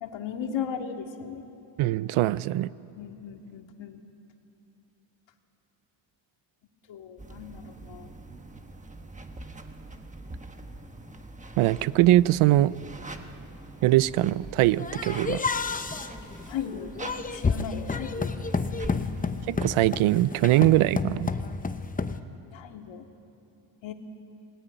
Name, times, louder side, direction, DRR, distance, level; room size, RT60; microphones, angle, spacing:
voice 1, 0.0-1.5 3.0-4.0 6.9-8.1 16.5-16.9 17.3-18.3 18.7-19.2 22.5-23.0 23.8-23.9, left 8 dB, 65° left, 4 dB, 2.2 m, -37 dB
voice 2, 1.8-2.7 11.6-12.7 13.8-15.4 19.5-21.3, right 15 dB, 85° right, 18 dB, 0.7 m, -22 dB
sound 1, 7.2-20.1, right 2 dB, 15° right, 1.3 m, -44 dB
sound 2, 14.8-22.2, left 4 dB, 15° left, 0.7 m, -30 dB
28.5 x 20.0 x 9.1 m, 3.0 s
cardioid pair, 145°, 48 cm